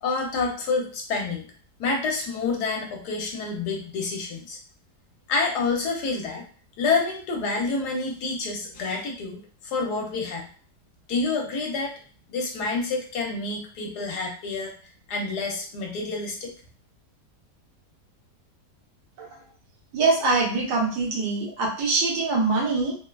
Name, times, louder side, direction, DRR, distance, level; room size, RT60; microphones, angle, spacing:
voice 1, 0.0-1.5 1.8-4.6 5.3-6.4 6.8-10.5 11.1-11.9 12.3-14.7 15.1-16.5, left 4 dB, 70° left, 0 dB, 1.2 m, -28 dB
voice 2, 19.9-22.9, right 3 dB, 80° right, -2 dB, 1.6 m, -23 dB
3.5 x 2.2 x 2.3 m, 0.41 s
omnidirectional pair, 1.8 m